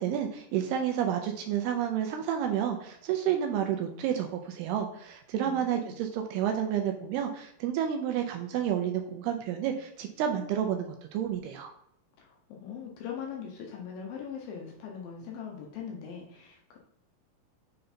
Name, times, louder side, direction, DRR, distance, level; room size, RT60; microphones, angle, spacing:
voice 1, 0.0-11.7, right 9 dB, 80° right, 4 dB, 2.4 m, -30 dB
voice 2, 5.4-6.0 12.2-16.8, left 7 dB, 75° left, 0 dB, 2.4 m, -41 dB
6.8 x 3.8 x 4.3 m, 0.75 s
omnidirectional pair, 4.9 m